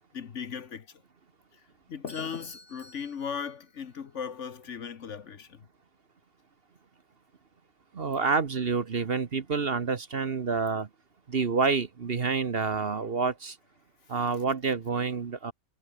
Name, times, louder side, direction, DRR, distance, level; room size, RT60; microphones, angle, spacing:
voice 1, 0.1-0.9 1.9-5.6, left 6 dB, 55° left, 1.4 m, -37 dB
Bell / Doorbell, 2.1-4.2, left 1 dB, 15° left, 5.4 m, -53 dB
voice 2, 7.9-10.9 11.3-13.5 14.1-15.5, right 5 dB, 45° right, 1.2 m, -28 dB
omnidirectional pair, 1.5 m